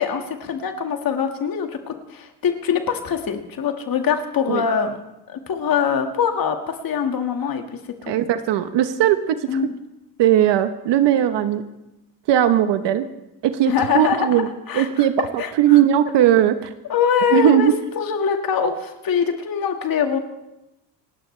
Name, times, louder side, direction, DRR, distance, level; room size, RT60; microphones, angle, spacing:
voice 1, 0.0-5.0 5.3-8.1 9.5-9.8 13.7-15.8 16.9-17.7 18.0-20.2, left 7 dB, 50° left, 5 dB, 1.9 m, -23 dB
voice 2, 8.1-9.6 10.2-11.6 12.3-13.1 13.4-14.5 14.7-16.7 17.3-17.7, right 11 dB, 70° right, 10 dB, 1.1 m, -18 dB
28.0 x 12.5 x 3.3 m, 0.94 s
cardioid pair, 110°, 45 cm